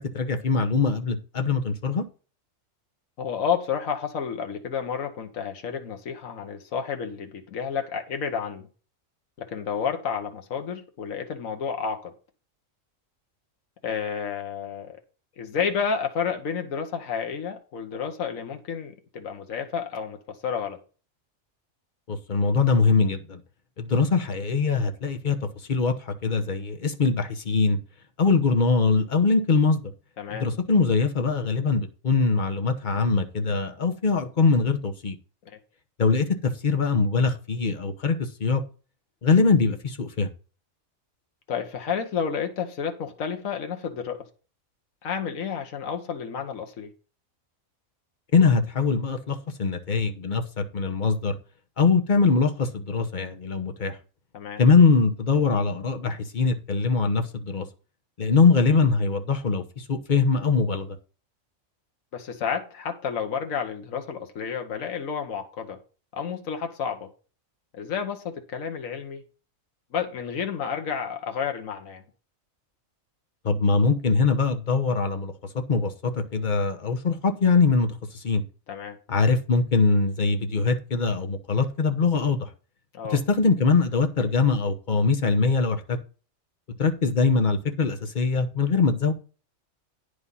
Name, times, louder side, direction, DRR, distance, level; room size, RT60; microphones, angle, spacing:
voice 1, 0.1-2.0 22.1-23.4 23.8-25.4 25.7-27.8 28.2-29.8 30.3-35.2 36.0-38.6 39.2-40.3 48.3-51.4 51.8-54.0 54.6-57.6 58.2-61.0 73.4-75.3 75.7-77.9 78.1-78.4 79.1-82.5 83.1-86.0 86.8-89.1, left 4 dB, 40° left, 1.1 m, -22 dB
voice 2, 3.2-8.7 9.4-12.1 13.8-15.0 15.4-20.8 30.2-30.5 35.4-35.6 41.5-44.2 45.0-46.9 54.3-54.6 62.1-65.8 66.1-67.1 67.7-69.2 69.9-72.0 78.7-79.0 82.9-83.2, left 7 dB, 75° left, 1.5 m, -31 dB
9.7 x 5.0 x 5.5 m
omnidirectional pair, 1.4 m